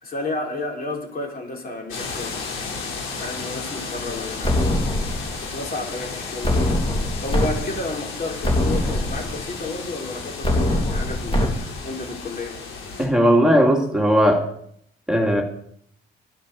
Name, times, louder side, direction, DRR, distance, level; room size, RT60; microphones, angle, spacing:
voice 1, 0.0-2.6 3.2-12.6, left 2 dB, 45° left, 0 dB, 4.2 m, -32 dB
sound 1, 1.9-13.1, left 4 dB, 85° left, 3.9 m, -33 dB
sound 2, 4.4-5.5 6.4-7.5 7.9-8.0 8.4-9.5 10.4-11.5, left 1 dB, 30° left, 2.9 m, -22 dB
voice 2, 13.0-14.4 15.1-15.4, equal, 5° right, 1 dB, 2.2 m, -17 dB
10.5 x 10.0 x 7.0 m, 0.68 s
cardioid pair, 90°, 20 cm